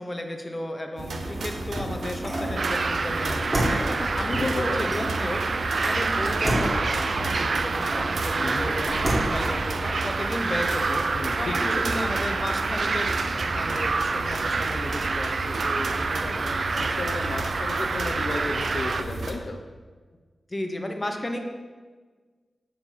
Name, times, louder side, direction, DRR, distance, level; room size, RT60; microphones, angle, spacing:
voice 1, 0.0-16.9 20.5-21.4, left 1 dB, 25° left, 4 dB, 0.8 m, -34 dB
sound 1, 1.0-19.3, right 2 dB, 80° right, 0.8 m, -33 dB
sound 2, 1.4-2.6 3.3-5.2 6.3-8.1 8.6-9.5, equal, 25° right, 2.1 m, -30 dB
sound 3, 2.5-19.0, right 4 dB, 55° right, 0.3 m, -28 dB
voice 2, 4.3-5.0 8.4-8.7 11.1-12.0 16.8-19.6, left 3 dB, 60° left, 3 dB, 0.6 m, -33 dB
7.3 x 6.8 x 4.2 m, 1.4 s
wide cardioid pair, 120°, 0 cm